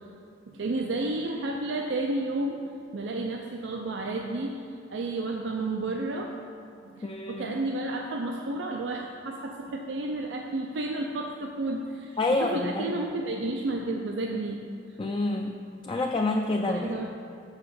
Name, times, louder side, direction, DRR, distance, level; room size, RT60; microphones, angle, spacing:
voice 1, 0.5-2.6 2.9-4.6 4.9-6.3 6.8-14.7 16.6-17.1, right 2 dB, 90° right, 2 dB, 0.5 m, -31 dB
voice 2, 7.0-7.6 12.2-13.1 15.0-17.1, left 2 dB, 25° left, 2 dB, 0.3 m, -28 dB
6.2 x 4.8 x 6.8 m, 2.6 s
head